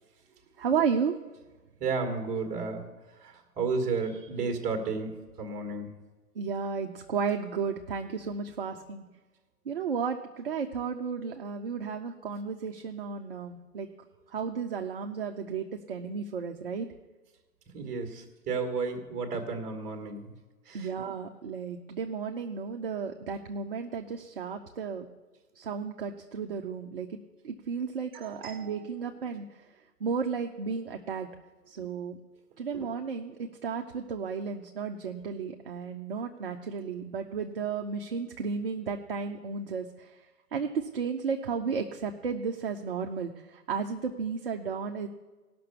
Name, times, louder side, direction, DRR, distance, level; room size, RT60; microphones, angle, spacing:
voice 1, 0.6-1.1 6.4-9.0 9.7-13.9 14.3-16.9 20.7-25.1 25.6-27.2 27.4-29.5 30.0-31.3 31.7-32.2 32.6-40.2 40.5-45.1, right 6 dB, 35° right, 3 dB, 0.6 m, -33 dB
voice 2, 1.8-2.9 3.1-5.9 17.7-20.3 20.6-20.9 28.1-28.7 32.7-32.9, right 4 dB, 15° right, 4 dB, 1.4 m, -33 dB
17.0 x 5.9 x 6.8 m, 1.2 s
hypercardioid pair, 145°, 48 cm